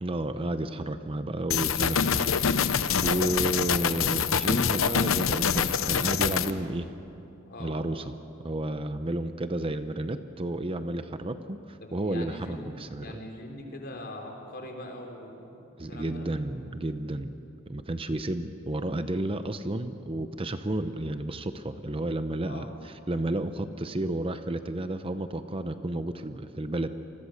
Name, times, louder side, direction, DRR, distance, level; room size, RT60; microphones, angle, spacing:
voice 1, 0.0-2.2 3.0-6.9 7.6-8.1 8.4-13.2 15.8-17.4 17.7-26.9, right 1 dB, 25° right, 10 dB, 0.7 m, -32 dB
sound 1, 1.5-6.5, left 7 dB, 80° left, 0.8 m, -25 dB
voice 2, 1.7-2.3 2.9-3.3 3.6-3.8 7.5-7.8 11.8-12.7 13.0-16.3 22.4-22.7, left 1 dB, 50° left, 2 dB, 3.8 m, -42 dB
27.5 x 21.5 x 6.6 m, 2.8 s
head